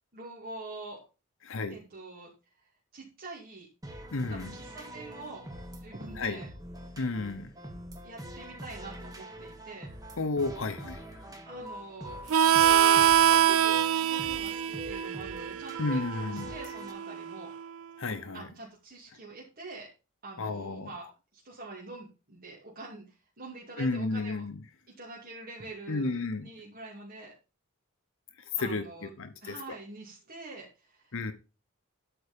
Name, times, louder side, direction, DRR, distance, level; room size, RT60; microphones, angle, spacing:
voice 1, 0.1-1.0 1.7-2.3 2.9-3.7 4.3-5.4 5.7-6.5 8.0-9.9 11.4-12.5 13.3-17.5 18.3-19.9 20.2-21.1 21.3-24.4 25.0-27.3 28.6-29.1 29.4-31.3, right 3 dB, 45° right, -4 dB, 2.4 m, -45 dB
voice 2, 1.4-1.8 4.1-4.6 6.2-6.4 7.0-7.5 10.2-11.3 15.8-16.5 18.0-18.5 20.4-20.9 23.8-24.6 25.9-26.5 28.6-29.6 31.1-31.3, left 3 dB, 65° left, 9 dB, 0.9 m, -32 dB
sound 1, 3.8-16.9, equal, 15° right, 1.7 m, -44 dB
Harmonica, 12.3-17.6, right 10 dB, 70° right, 0.5 m, -25 dB
12.5 x 4.8 x 5.1 m, 0.31 s
head